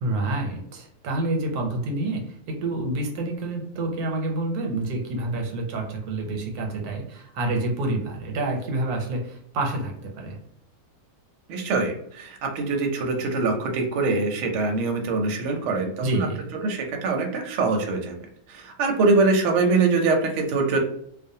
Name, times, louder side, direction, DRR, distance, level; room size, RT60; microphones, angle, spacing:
voice 1, 0.0-10.4 16.0-16.5, right 2 dB, 90° right, 1 dB, 1.1 m, -28 dB
voice 2, 11.5-16.3 16.6-18.2 18.5-20.8, right 3 dB, 65° right, 3 dB, 0.8 m, -23 dB
2.5 x 2.2 x 2.7 m, 0.69 s
omnidirectional pair, 1.6 m